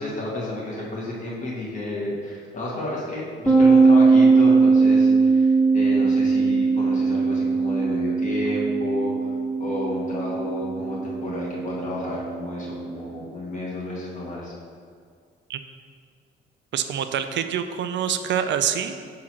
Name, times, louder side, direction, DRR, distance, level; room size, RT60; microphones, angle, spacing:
voice 1, 0.0-9.3 9.6-14.5, left 1 dB, 40° left, -6 dB, 1.7 m, -31 dB
sound 1, 3.5-12.9, right 4 dB, ahead, 1.2 m, -20 dB
voice 2, 16.7-19.0, right 8 dB, 65° right, 9 dB, 0.5 m, -26 dB
5.9 x 3.8 x 6.1 m, 2.1 s
cardioid pair, 90°, 20 cm